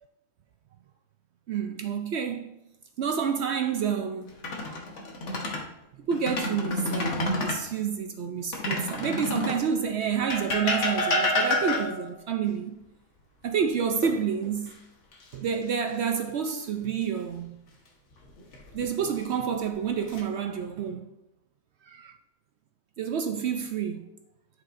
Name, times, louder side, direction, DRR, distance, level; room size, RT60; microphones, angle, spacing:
voice 1, 1.5-2.6 3.0-4.3 6.1-12.8 13.4-14.7 15.3-17.6 18.7-21.1 21.9-22.1 23.0-24.1, right 7 dB, 65° right, 0.7 m, -29 dB
sound 1, 4.3-5.7 6.1-7.6 8.5-9.7 10.3-12.1 14.0-14.7 15.1-15.3 18.2-18.8 19.6-20.2, left 2 dB, 55° left, 1.5 m, -29 dB
11.0 x 6.4 x 2.6 m
omnidirectional pair, 1.6 m